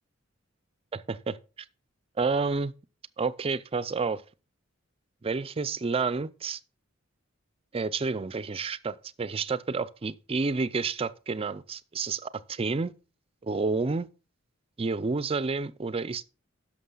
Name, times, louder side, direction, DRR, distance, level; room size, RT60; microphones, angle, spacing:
voice 1, 0.9-1.4 2.2-2.7 3.2-4.2 5.2-6.6 7.7-12.9 13.4-14.1 14.8-16.2, right 4 dB, 30° right, 0.4 m, -30 dB
11.0 x 6.6 x 3.9 m
head